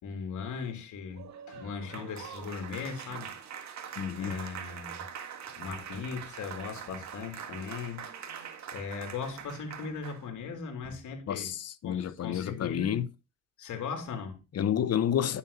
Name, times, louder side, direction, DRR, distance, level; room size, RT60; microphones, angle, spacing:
voice 1, 0.0-3.4 4.2-5.1 5.6-8.0 8.7-11.5 11.8-13.0 13.6-14.4, left 5 dB, 75° left, 3.4 m, -38 dB
Applause, 1.1-10.3, right 8 dB, 65° right, 1.8 m, -43 dB
voice 2, 4.0-4.4 11.3-13.1 14.5-15.4, left 9 dB, 55° left, 1.0 m, -30 dB
10.5 x 7.1 x 4.2 m
cardioid pair, 90°, 30 cm